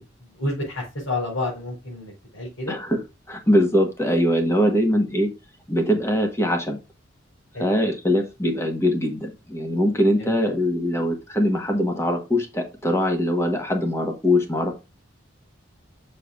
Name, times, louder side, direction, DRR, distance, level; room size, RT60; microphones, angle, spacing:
voice 1, 0.3-2.8 7.5-7.7 10.2-10.5, left 2 dB, 85° left, -6 dB, 4.7 m, -30 dB
voice 2, 2.7-3.0 3.3-5.3 5.7-6.8 7.6-14.7, equal, 15° left, 3 dB, 1.5 m, -22 dB
6.9 x 6.7 x 2.6 m, 0.27 s
head